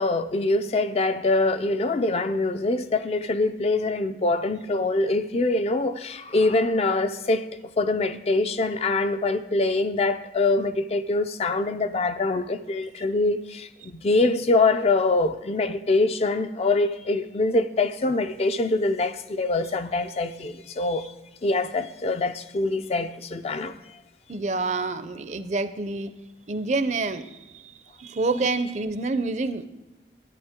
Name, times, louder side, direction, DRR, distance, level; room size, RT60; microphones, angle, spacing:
voice 1, 0.0-21.1 21.4-23.8, left 2 dB, 35° left, 0.4 m, -24 dB
voice 2, 24.3-26.1 26.5-29.7, right 3 dB, 40° right, 0.5 m, -28 dB
11.0 x 8.7 x 3.6 m
head